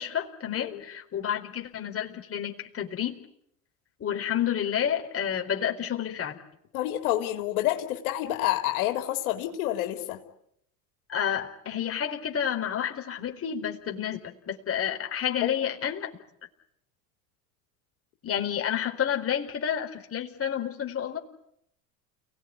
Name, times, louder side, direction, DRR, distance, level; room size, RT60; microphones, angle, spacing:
voice 1, 0.0-3.2 4.0-6.4 11.1-16.1 18.2-21.2, left 9 dB, 30° left, 3 dB, 4.4 m, -30 dB
voice 2, 6.7-10.2 15.4-15.6, left 14 dB, 70° left, 4 dB, 3.8 m, -28 dB
29.5 x 18.5 x 9.7 m, 0.75 s
hypercardioid pair, 90°, 44 cm